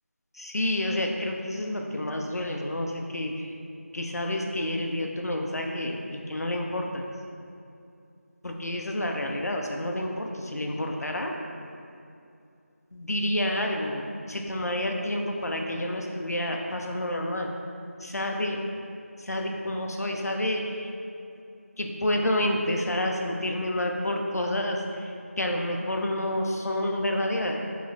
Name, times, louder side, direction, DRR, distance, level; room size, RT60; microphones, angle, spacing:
voice 1, 0.4-3.5 3.9-6.0 6.3-7.0 8.4-11.3 12.9-17.5 18.0-18.6 19.2-20.9 21.8-27.6, left 1 dB, 90° left, 1 dB, 0.5 m, -29 dB
3.8 x 3.1 x 3.0 m, 2.6 s
figure-of-eight pair, 180°, 8 cm